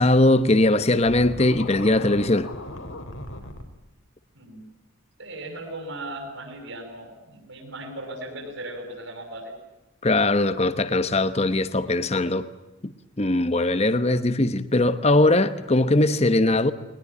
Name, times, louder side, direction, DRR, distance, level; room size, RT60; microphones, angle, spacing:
voice 1, 0.0-2.5 10.0-12.5 12.8-16.7, left 2 dB, 30° left, 1.0 m, -20 dB
Scratching (performance technique), 1.1-3.6, left 1 dB, 75° left, 3.8 m, -37 dB
voice 2, 5.2-9.5, right 1 dB, 65° right, 6.7 m, -37 dB
22.0 x 20.5 x 9.7 m
head